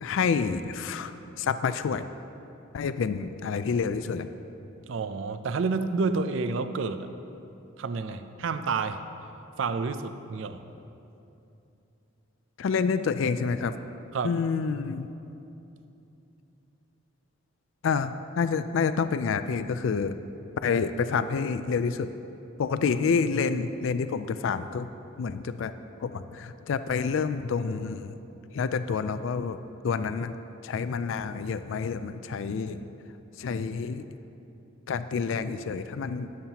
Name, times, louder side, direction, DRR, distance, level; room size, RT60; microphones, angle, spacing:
voice 1, 0.0-2.1 2.7-4.3 12.6-13.8 14.2-15.1 17.8-20.2 20.6-22.1 22.6-24.9 25.2-25.7 26.0-28.1 28.5-29.6 29.8-30.4 30.6-32.8 33.4-34.1 34.9-36.3, left 5 dB, 70° left, 12 dB, 0.3 m, -28 dB
voice 2, 4.9-7.1 7.8-9.0 9.6-10.6 14.1-14.4, right 4 dB, 70° right, 10 dB, 0.4 m, -29 dB
12.5 x 10.5 x 2.9 m, 2.8 s
head